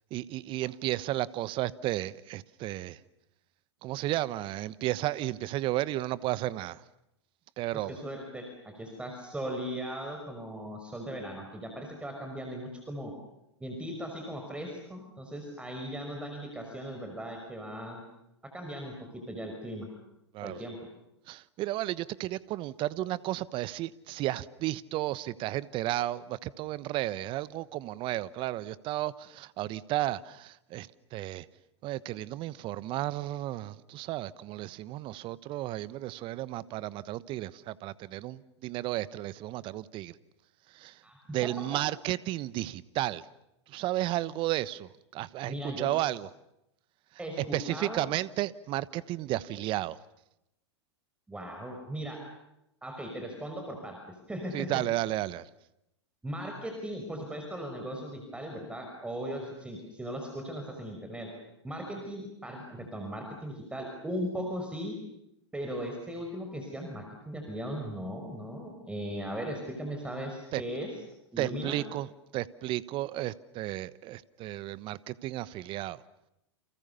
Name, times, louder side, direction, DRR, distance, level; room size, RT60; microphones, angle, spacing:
voice 1, 0.1-3.0 3.8-6.8 7.6-8.0 20.3-20.6 21.3-31.5 31.8-40.2 40.7-41.0 41.3-43.3 43.7-46.3 47.4-50.0 54.5-55.5 70.5-70.6 71.4-72.1 72.3-76.0, right 15 dB, 35° right, 1.1 m, -33 dB
voice 2, 7.7-13.1 13.6-18.0 18.5-18.9 19.3-19.9 20.4-20.8 41.0-41.5 45.5-45.9 47.2-48.0 51.3-52.2 52.8-54.0 54.3-54.7 56.2-61.3 61.6-65.0 65.5-70.9 71.3-71.8, equal, 5° right, 5.5 m, -38 dB
29.5 x 28.5 x 7.0 m
hypercardioid pair, 105°, 15 cm